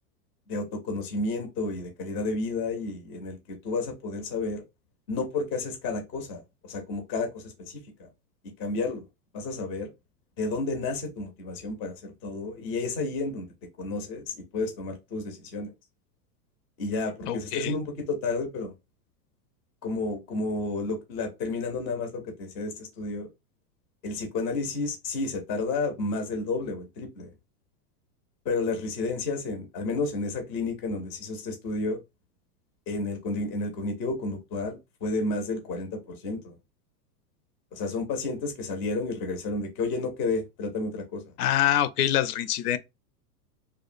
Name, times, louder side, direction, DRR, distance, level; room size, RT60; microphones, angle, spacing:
voice 1, 0.5-4.6 5.1-8.1 8.6-9.0 9.3-9.9 10.4-13.5 13.8-15.7 16.8-18.7 19.8-23.3 24.0-27.3 28.5-32.0 32.9-36.6 37.7-41.2, left 3 dB, 20° left, 0.4 m, -31 dB
voice 2, 17.3-17.8 41.4-42.8, left 11 dB, 70° left, 0.5 m, -25 dB
2.8 x 2.2 x 2.4 m
supercardioid pair, 140°, 47 cm